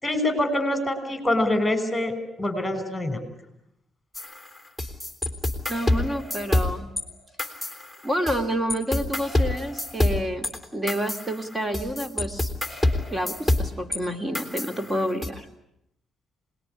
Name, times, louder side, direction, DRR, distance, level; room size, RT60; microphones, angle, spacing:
voice 1, 0.0-3.2, left 1 dB, 10° left, 11 dB, 5.9 m, -25 dB
sound 1, 4.1-7.0 7.4-8.4 8.7-14.0 14.3-15.3, left 1 dB, 5° right, 3.6 m, -27 dB
voice 2, 5.7-6.9 8.0-12.5 13.1-15.5, equal, 25° right, 8 dB, 2.7 m, -29 dB
26.5 x 20.5 x 10.0 m, 0.80 s
cardioid pair, 90°, 0 cm